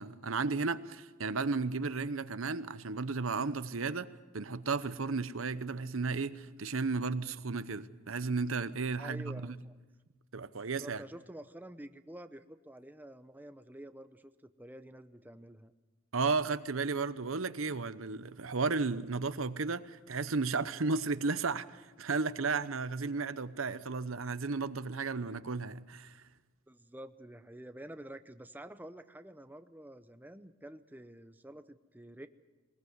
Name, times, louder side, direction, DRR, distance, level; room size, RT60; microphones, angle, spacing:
voice 1, 0.0-4.1 4.3-9.5 10.3-11.0 16.1-26.2, right 4 dB, 80° right, 0.9 m, -34 dB
voice 2, 9.0-9.7 10.8-14.3 14.6-15.7 26.7-32.3, right 1 dB, 10° right, 0.7 m, -49 dB
21.0 x 20.0 x 8.0 m
head